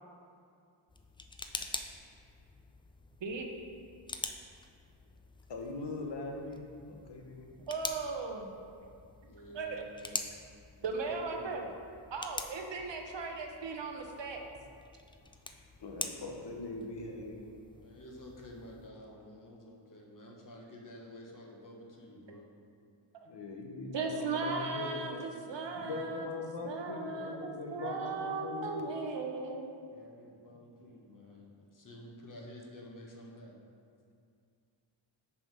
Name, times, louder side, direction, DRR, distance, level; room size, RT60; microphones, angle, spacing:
sound 1, 0.9-18.9, left 2 dB, 10° left, 0.3 m, -46 dB
voice 1, 1.4-1.8 9.2-10.3 11.1-11.5 17.7-22.5 29.9-33.6, left 1 dB, 40° left, -1 dB, 1.3 m, -51 dB
voice 2, 5.5-7.5 15.8-17.5 23.2-25.3 25.7-28.9, left 3 dB, 55° left, 1 dB, 0.9 m, -41 dB
voice 3, 7.7-8.5 9.5-9.8 10.8-11.6 12.1-14.4 23.9-26.3 26.6-29.7, right 4 dB, 60° right, 3 dB, 0.9 m, -37 dB
6.7 x 3.6 x 5.3 m, 2.4 s
cardioid pair, 50°, 48 cm